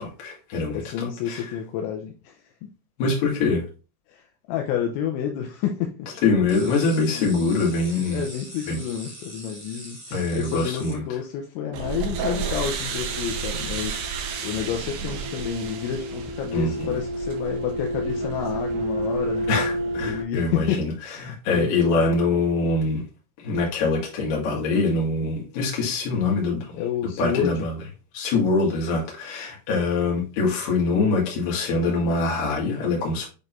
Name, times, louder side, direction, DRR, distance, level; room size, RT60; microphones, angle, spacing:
voice 1, 0.0-1.4 3.0-3.7 6.2-8.2 8.7-8.8 10.1-11.0 16.5-17.0 19.5-20.9 21.2-23.1 23.4-26.8 27.2-27.7 28.1-33.3, left 3 dB, 55° left, 3.0 m, -24 dB
voice 2, 0.7-2.4 4.1-6.1 7.1-7.3 8.1-14.1 14.4-19.5 20.0-22.0 26.8-27.7, left 9 dB, 85° left, 2.8 m, -30 dB
sound 1, 6.5-10.9, right 1 dB, 10° right, 1.0 m, -42 dB
sound 2, 11.7-20.2, right 3 dB, 75° right, 2.6 m, -29 dB
9.0 x 4.0 x 2.6 m
omnidirectional pair, 5.8 m